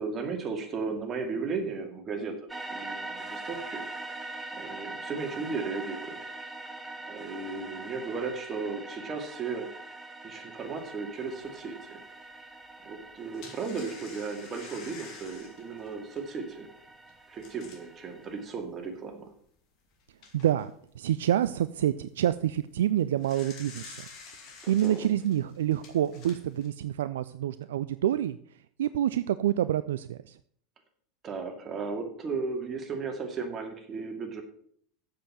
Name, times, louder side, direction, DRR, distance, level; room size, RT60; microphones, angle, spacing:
voice 1, 0.0-3.8 4.5-6.2 7.1-9.7 10.2-12.0 12.8-16.7 17.3-19.3 24.6-25.1 31.2-34.4, right 4 dB, 30° right, 3 dB, 2.4 m, -35 dB
sound 1, 2.5-18.4, right 2 dB, 10° right, 1.6 m, -43 dB
sound 2, 10.8-10.9 11.4-11.5 13.0-18.0 18.6-18.7 19.1-19.2 19.8-20.7 22.9-26.7, left 4 dB, 50° left, 2.5 m, -49 dB
voice 2, 20.3-24.1 24.7-28.4 28.8-30.4, right 11 dB, 75° right, 14 dB, 0.3 m, -27 dB
7.6 x 6.8 x 7.6 m, 0.62 s
hypercardioid pair, 80°, 0 cm